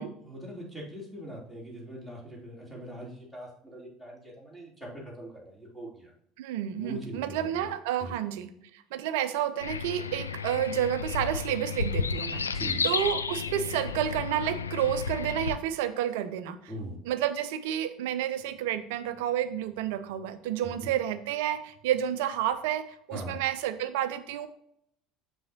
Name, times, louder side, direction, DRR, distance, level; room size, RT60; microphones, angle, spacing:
voice 1, 0.0-6.1 6.8-7.7 8.0-8.2 12.5-12.9 16.7-17.0 20.6-20.9 23.1-23.4, equal, 5° left, -4 dB, 3.1 m, -41 dB
voice 2, 6.4-12.5 12.8-16.6 17.1-24.5, right 10 dB, 65° right, 12 dB, 0.6 m, -30 dB
sound 1, 9.6-15.6, left 5 dB, 80° left, 0.3 m, -32 dB
7.6 x 6.3 x 2.7 m, 0.71 s
figure-of-eight pair, 65°, 0 cm